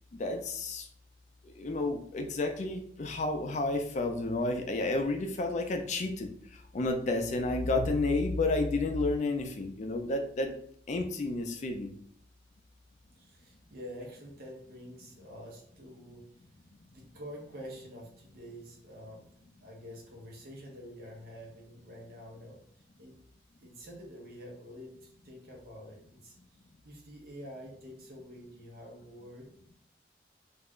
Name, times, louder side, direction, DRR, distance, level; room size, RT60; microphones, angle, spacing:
voice 1, 0.2-0.9 1.5-10.5 10.9-11.9, left 2 dB, 40° left, 4 dB, 0.3 m, -31 dB
voice 2, 13.1-16.2 16.9-19.2 19.6-23.2 23.6-26.4 26.8-29.5, equal, 55° right, -1 dB, 0.8 m, -47 dB
2.4 x 2.1 x 3.6 m, 0.63 s
head